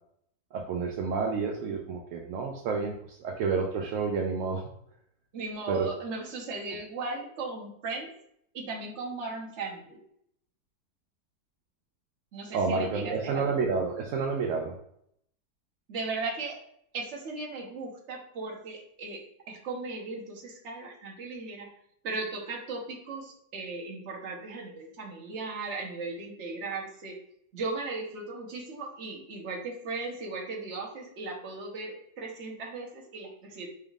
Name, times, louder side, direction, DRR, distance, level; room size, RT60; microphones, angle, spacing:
voice 1, 0.5-2.9 3.2-4.6 5.7-5.9 12.5-14.7, right 5 dB, 70° right, 1 dB, 0.7 m, -29 dB
voice 2, 5.3-8.1 8.5-10.0 12.3-13.5 15.9-16.6 16.9-21.7 22.0-27.2 27.5-33.7, right 3 dB, 50° right, -1 dB, 1.1 m, -37 dB
4.4 x 3.5 x 2.3 m, 0.70 s
omnidirectional pair, 1.7 m